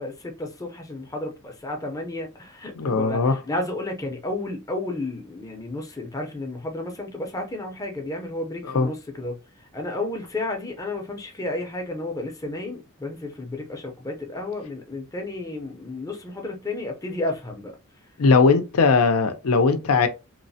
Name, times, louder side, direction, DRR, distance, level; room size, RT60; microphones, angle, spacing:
voice 1, 0.0-17.8, left 2 dB, 15° left, 0.6 m, -32 dB
voice 2, 2.8-3.3 8.7-8.9 18.2-20.1, left 4 dB, 75° left, 0.5 m, -19 dB
3.0 x 2.1 x 2.7 m
head